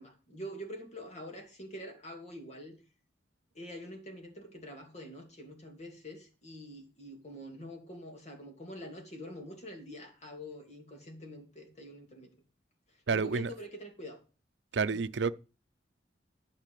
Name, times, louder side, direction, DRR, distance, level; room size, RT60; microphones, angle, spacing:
voice 1, 0.0-2.7 3.5-12.3 13.1-14.2 14.9-15.1, equal, 40° left, 2.6 m, -45 dB
voice 2, 13.1-13.5 14.7-15.3, right 5 dB, 75° right, 0.6 m, -29 dB
12.0 x 4.9 x 6.9 m
head